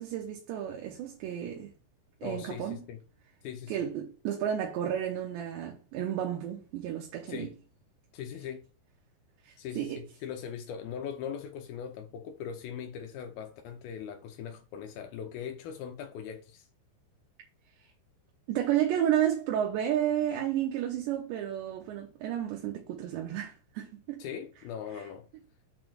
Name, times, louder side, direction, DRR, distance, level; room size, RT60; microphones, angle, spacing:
voice 1, 0.0-1.7 2.2-2.8 3.7-7.5 9.4-10.0 18.5-24.2, right 10 dB, 80° right, 3.2 m, -32 dB
voice 2, 2.2-3.0 3.4-3.8 7.3-7.5 8.1-8.7 9.6-16.7 24.2-25.3, left 8 dB, 85° left, 2.2 m, -40 dB
7.0 x 4.2 x 6.2 m
omnidirectional pair, 5.2 m